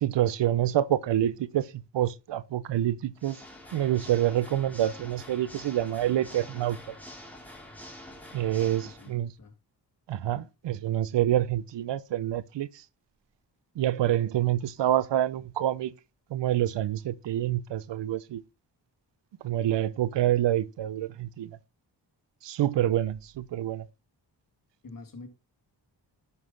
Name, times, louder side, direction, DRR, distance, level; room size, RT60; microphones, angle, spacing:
voice 1, 0.0-3.4 3.7-6.8 8.3-9.3 10.1-12.7 13.8-15.9 16.3-18.4 19.4-21.6 22.4-23.9, right 12 dB, 80° right, 0.6 m, -27 dB
Water / Mechanisms, 3.1-9.1, left 1 dB, 5° left, 3.1 m, -46 dB
voice 2, 8.6-9.5 24.8-25.3, left 3 dB, 50° left, 2.3 m, -47 dB
11.0 x 5.6 x 3.8 m
cardioid pair, 70°, 42 cm